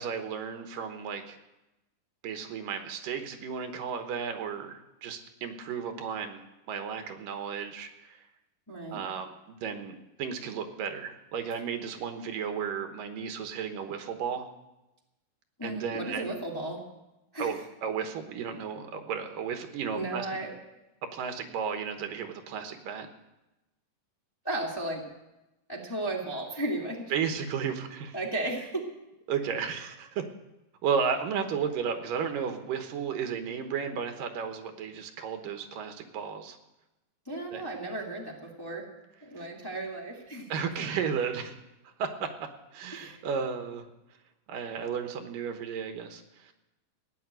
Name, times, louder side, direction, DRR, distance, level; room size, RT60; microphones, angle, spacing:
voice 1, 0.0-1.4 2.2-8.3 8.9-14.5 15.6-16.3 17.4-20.3 21.1-23.1 27.1-28.2 29.3-30.2 30.8-36.6 37.5-37.6 39.4-39.5 40.5-41.5 41.8-43.9 44.5-46.5, right 6 dB, 80° right, 6 dB, 2.8 m, -34 dB
voice 2, 8.7-9.0 15.6-16.8 17.3-17.6 19.9-20.5 24.4-25.0 25.7-27.1 28.1-28.9 37.2-38.9 39.2-40.5 42.9-43.2, right 2 dB, 10° left, -2 dB, 1.5 m, -34 dB
16.0 x 10.0 x 7.9 m, 0.97 s
omnidirectional pair, 3.9 m